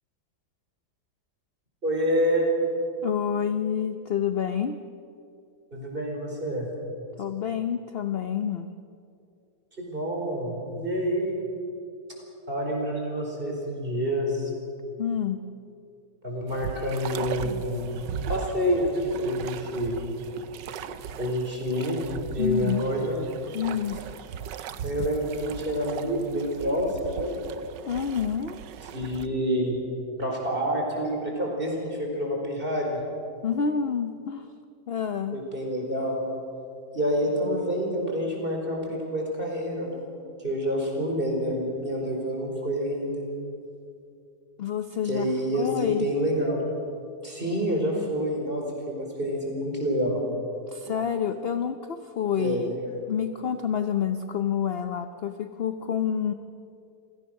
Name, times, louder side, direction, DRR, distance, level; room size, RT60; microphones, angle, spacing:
voice 1, 1.8-2.5 5.7-6.7 9.8-11.4 12.5-14.5 16.2-17.8 18.1-20.0 21.2-22.0 22.3-23.2 24.8-27.4 28.9-29.8 30.2-33.0 35.3-36.2 36.9-40.1 40.4-43.2 45.0-46.7 47.2-50.2 52.4-52.8, equal, 30° right, 0 dB, 4.7 m, -28 dB
voice 2, 3.0-4.8 7.2-8.7 15.0-15.4 22.4-22.8 23.5-24.0 27.9-28.6 33.4-34.5 34.9-35.4 37.4-37.6 44.6-45.3 45.5-46.1 50.7-52.7 53.1-56.3, left 8 dB, 55° left, 8 dB, 0.7 m, -28 dB
sound 1, 16.5-29.3, right 8 dB, 90° right, 1.5 m, -38 dB
28.0 x 17.0 x 6.5 m, 2.5 s
omnidirectional pair, 1.8 m